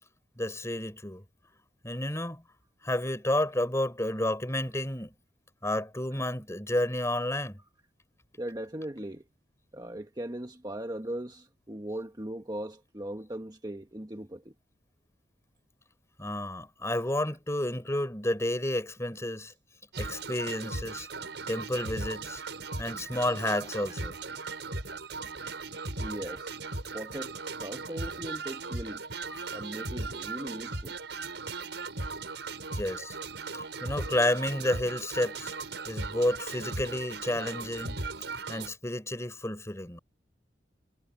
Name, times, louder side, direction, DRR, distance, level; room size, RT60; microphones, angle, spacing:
voice 1, 0.4-1.2 1.8-2.4 2.8-5.1 5.6-7.6 16.2-19.5 20.0-21.1 21.5-22.4 22.8-24.1 29.3-29.4 32.7-33.2 33.5-35.5 35.9-38.0 38.5-40.0, left 1 dB, 15° left, 4.0 m, -31 dB
voice 2, 8.3-9.2 9.7-14.5 23.9-24.0 26.0-26.6 26.9-29.0 29.5-31.0, right 1 dB, 20° right, 1.3 m, -39 dB
sound 1, 19.9-38.7, right 3 dB, 75° right, 6.2 m, -38 dB
head